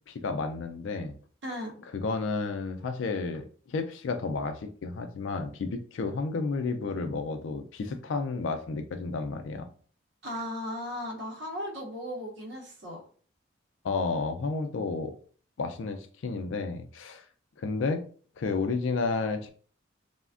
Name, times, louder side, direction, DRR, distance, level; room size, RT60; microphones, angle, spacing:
voice 1, 0.1-1.1 1.9-9.7 13.8-15.1 15.6-17.3 17.6-18.0 18.4-19.5, left 4 dB, 80° left, 7 dB, 0.4 m, -31 dB
voice 2, 1.4-1.7 10.2-13.0, equal, 65° right, -1 dB, 0.7 m, -36 dB
3.2 x 2.1 x 2.4 m, 0.44 s
head